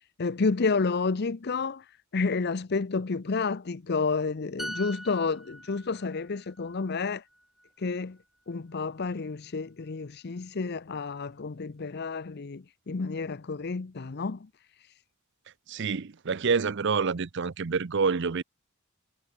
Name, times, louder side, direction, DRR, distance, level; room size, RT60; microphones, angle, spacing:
voice 1, 0.2-1.8 2.1-7.2 7.8-8.2 8.5-14.5, left 4 dB, 50° left, 0.6 m, -30 dB
sound 1, 4.6-8.2 8.5-8.8, equal, ahead, 6.1 m, -43 dB
voice 2, 15.7-18.4, right 5 dB, 60° right, 0.7 m, -27 dB
head